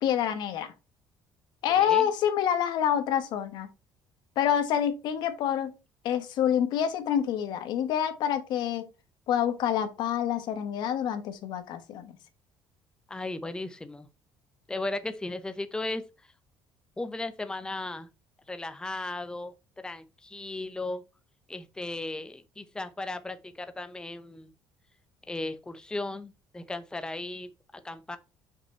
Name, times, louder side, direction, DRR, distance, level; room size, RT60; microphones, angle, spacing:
voice 1, 0.0-0.7 1.6-3.7 4.4-5.8 6.0-8.9 9.3-12.1, left 9 dB, 70° left, 1.3 m, -27 dB
voice 2, 1.7-2.1 13.1-14.1 14.7-16.1 17.0-18.1 18.5-19.5 19.8-21.0 21.5-24.5 25.3-28.2, left 2 dB, 10° left, 0.8 m, -36 dB
6.2 x 5.1 x 4.4 m
cardioid pair, 105°, 8 cm